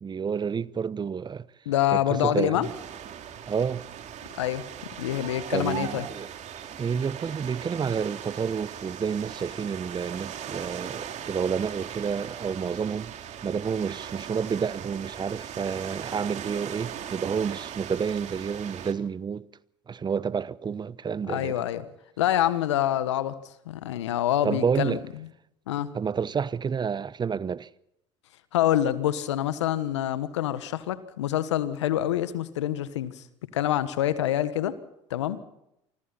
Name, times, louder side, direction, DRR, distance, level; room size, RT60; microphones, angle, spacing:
voice 1, 0.0-1.5 1.9-2.7 3.5-3.8 5.5-6.3 6.8-13.1 13.4-19.5 19.9-21.6 24.4-25.0 25.9-27.7, right 6 dB, 30° right, 0.9 m, -29 dB
voice 2, 1.6-2.7 4.4-4.7 5.0-6.1 21.3-21.8 22.2-23.4 23.6-25.0 25.7-25.9 28.5-33.2 33.5-34.8 35.1-35.4, left 12 dB, 85° left, 1.6 m, -26 dB
sound 1, 2.6-18.9, right 9 dB, 50° right, 3.0 m, -39 dB
27.0 x 24.5 x 4.3 m
hypercardioid pair, 65°, 15 cm